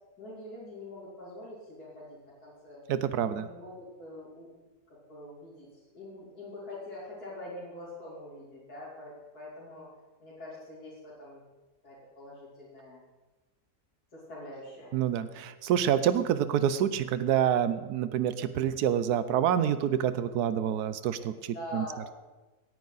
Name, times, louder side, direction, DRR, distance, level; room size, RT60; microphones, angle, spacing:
voice 1, 0.2-4.5 5.1-5.7 5.9-9.9 10.2-11.4 11.8-13.0 14.1-14.9 21.5-22.1, left 1 dB, 75° left, -9 dB, 3.5 m, -44 dB
voice 2, 2.9-3.5 14.9-21.8, right 9 dB, 85° right, 13 dB, 1.2 m, -27 dB
16.5 x 9.4 x 4.1 m, 1.2 s
omnidirectional pair, 1.6 m